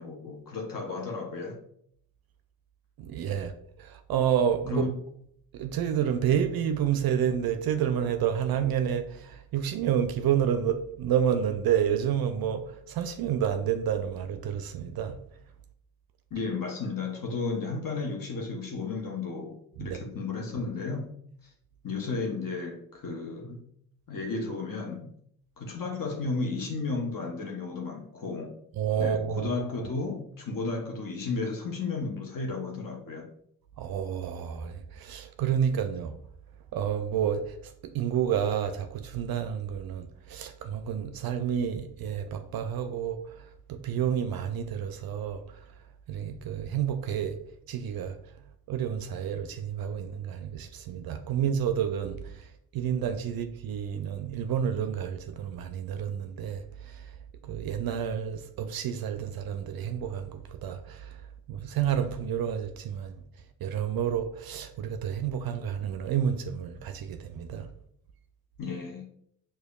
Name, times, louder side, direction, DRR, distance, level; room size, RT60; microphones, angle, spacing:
voice 1, 0.0-1.6 4.7-4.9 16.3-21.1 21.8-23.6 24.1-25.1 25.6-28.6 29.0-33.3 68.6-69.1, left 3 dB, 45° left, 0.8 m, -33 dB
voice 2, 3.0-3.5 3.8-4.9 5.5-15.2 19.8-20.0 28.8-29.5 33.8-36.1 36.7-37.4 37.8-43.2 43.7-45.4 46.1-47.4 47.7-48.2 48.7-52.2 52.7-57.0 57.4-61.2 61.5-63.1 63.6-67.7, right 9 dB, 55° right, 0.5 m, -29 dB
4.9 x 2.3 x 2.3 m
hypercardioid pair, 45°, 45 cm